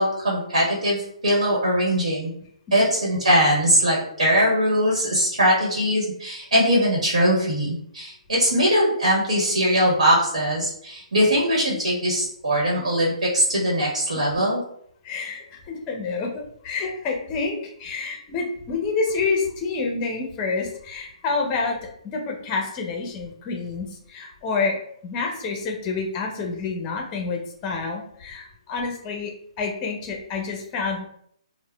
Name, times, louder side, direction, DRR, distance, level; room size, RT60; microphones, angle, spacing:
voice 1, 0.0-2.3 2.7-14.6, equal, 80° right, -5 dB, 1.1 m, -21 dB
voice 2, 15.0-21.8 22.1-29.3 29.6-31.0, left 4 dB, 25° left, 1 dB, 0.6 m, -28 dB
3.5 x 2.1 x 2.2 m, 0.67 s
hypercardioid pair, 140°, 4 cm